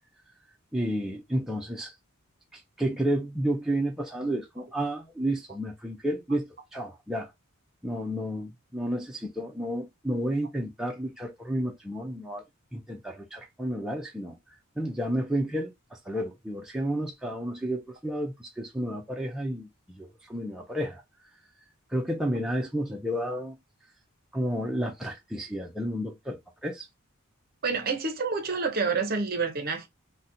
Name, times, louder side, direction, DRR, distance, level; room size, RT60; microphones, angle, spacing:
voice 1, 0.7-1.9 2.5-7.3 7.8-12.4 12.7-14.4 14.8-21.0 21.9-23.6 24.3-26.9, right 1 dB, ahead, 0.4 m, -31 dB
voice 2, 27.6-29.9, right 4 dB, 40° right, 0.6 m, -28 dB
3.9 x 2.1 x 2.6 m
head